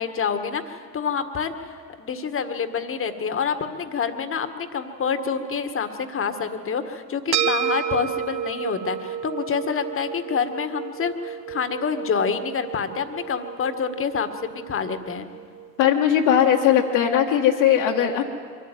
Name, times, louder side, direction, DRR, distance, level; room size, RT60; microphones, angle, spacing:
voice 1, 0.0-1.5 2.0-15.3, left 6 dB, 25° left, 8 dB, 1.8 m, -27 dB
sound 1, 7.3-15.9, right 9 dB, 60° right, 2.1 m, -31 dB
voice 2, 15.8-18.2, left 9 dB, 55° left, -2 dB, 2.0 m, -19 dB
24.0 x 14.0 x 9.3 m, 2.1 s
figure-of-eight pair, 75°, 49 cm